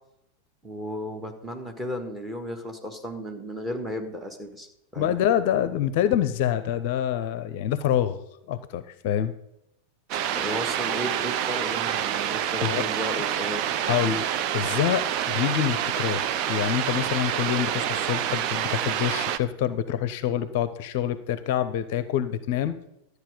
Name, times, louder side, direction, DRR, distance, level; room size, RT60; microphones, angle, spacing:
voice 1, 0.6-4.7 4.9-5.2 10.3-13.7, equal, 10° right, 4 dB, 1.8 m, -34 dB
voice 2, 5.0-8.2 8.5-9.3 12.6-12.8 13.8-14.3 14.5-22.7, left 10 dB, 50° left, 13 dB, 0.6 m, -26 dB
sound 1, 10.1-19.4, right 10 dB, 40° right, 0.6 m, -27 dB
12.5 x 8.1 x 5.1 m, 0.82 s
figure-of-eight pair, 90°, 0 cm